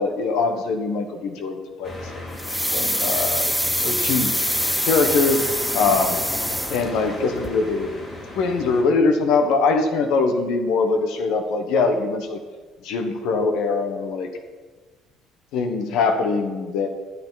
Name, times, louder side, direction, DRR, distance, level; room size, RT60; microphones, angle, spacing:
voice 1, 0.0-2.3 2.7-3.5 3.8-4.3 4.8-5.4 5.7-6.2 6.7-7.9 8.3-12.4 12.8-14.3 15.5-16.9, left 4 dB, 65° left, 5 dB, 1.1 m, -22 dB
sound 1, 1.8-8.8, left 2 dB, 25° left, 2.0 m, -35 dB
sound 2, 2.4-7.2 7.4-7.5, equal, ahead, 0.4 m, -24 dB
11.0 x 9.7 x 4.0 m, 1.4 s
cardioid pair, 175°, 0 cm